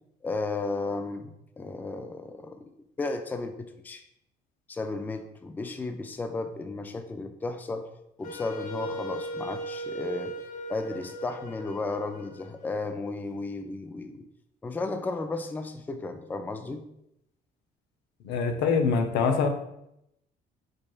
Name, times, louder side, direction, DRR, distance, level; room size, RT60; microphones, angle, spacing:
voice 1, 0.2-2.7 3.0-4.0 4.7-7.9 8.2-10.3 10.7-14.3 14.6-16.8, left 3 dB, 10° left, 7 dB, 0.3 m, -34 dB
Wind instrument woodwind instrument, 8.2-13.2, right 1 dB, 50° left, 0.7 m, -38 dB
voice 2, 18.2-19.5, left 5 dB, 85° left, 5 dB, 0.7 m, -24 dB
5.0 x 4.3 x 2.3 m, 0.81 s
cardioid pair, 110°, 17 cm